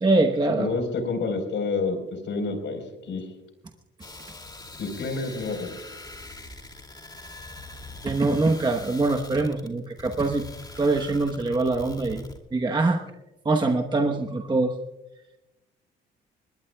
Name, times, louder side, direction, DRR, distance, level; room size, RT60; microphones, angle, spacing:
voice 1, 0.0-0.7 8.0-10.5 10.8-12.2 12.5-13.0 13.4-14.8, right 3 dB, 20° right, 3 dB, 1.0 m, -23 dB
voice 2, 0.6-3.3 4.8-5.7, left 4 dB, 70° left, 6 dB, 4.2 m, -29 dB
sound 1, 4.0-12.4, left 2 dB, 20° left, 2.5 m, -43 dB
21.5 x 19.5 x 2.3 m, 1.0 s
cardioid pair, 90°, 20 cm